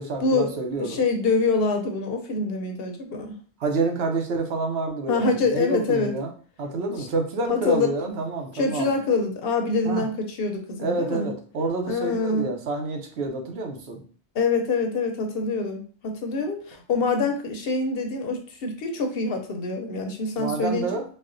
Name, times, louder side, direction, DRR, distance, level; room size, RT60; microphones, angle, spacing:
voice 1, 0.0-1.0 3.6-6.3 6.6-8.9 9.8-10.0 10.8-14.0 20.4-21.0, right 3 dB, 70° right, 3 dB, 0.9 m, -28 dB
voice 2, 0.8-3.4 5.1-6.1 7.0-7.1 7.5-8.1 8.5-11.3 11.9-12.6 14.3-20.9, left 3 dB, 65° left, 4 dB, 0.7 m, -25 dB
4.1 x 2.1 x 2.5 m, 0.41 s
omnidirectional pair, 1.1 m